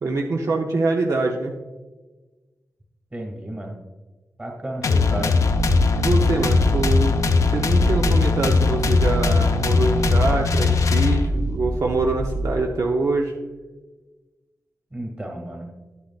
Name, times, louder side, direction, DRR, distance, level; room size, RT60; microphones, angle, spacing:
voice 1, 0.0-1.5 5.9-7.2 7.5-13.3, right 3 dB, 65° right, 1 dB, 0.6 m, -24 dB
voice 2, 3.1-3.8 4.4-5.4 14.9-15.7, right 1 dB, 25° right, 1 dB, 2.0 m, -32 dB
sound 1, 4.8-11.5, left 4 dB, 65° left, 0.5 m, -20 dB
sound 2, 5.5-12.6, right 2 dB, 40° right, 2.2 m, -26 dB
10.5 x 8.4 x 2.4 m, 1.2 s
wide cardioid pair, 135°, 6 cm